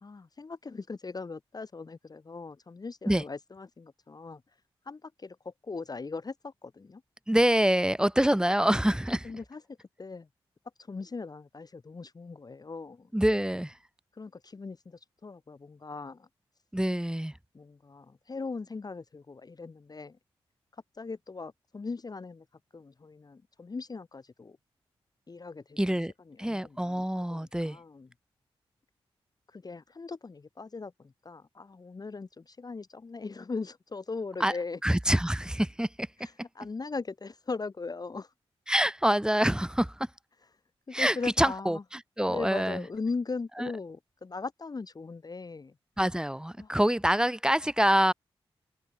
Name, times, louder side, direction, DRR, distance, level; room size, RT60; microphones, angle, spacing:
voice 1, 0.0-4.4 4.8-7.0 9.2-10.3 10.8-13.1 14.1-16.3 17.5-20.2 20.7-22.5 22.7-24.6 25.3-26.0 26.3-27.1 27.3-28.1 29.5-34.8 36.2-38.3 40.9-41.8 42.3-45.8 46.6-46.7, left 4 dB, 40° left, 0.7 m, -39 dB
voice 2, 7.3-9.3 13.1-13.8 16.7-17.3 25.8-26.1 26.4-27.8 34.4-34.5 34.8-36.1 38.7-40.1 40.9-41.8 42.2-42.8 43.6-43.7 46.0-48.1, right 1 dB, 5° right, 1.2 m, -26 dB
open air
supercardioid pair, 40°, 11 cm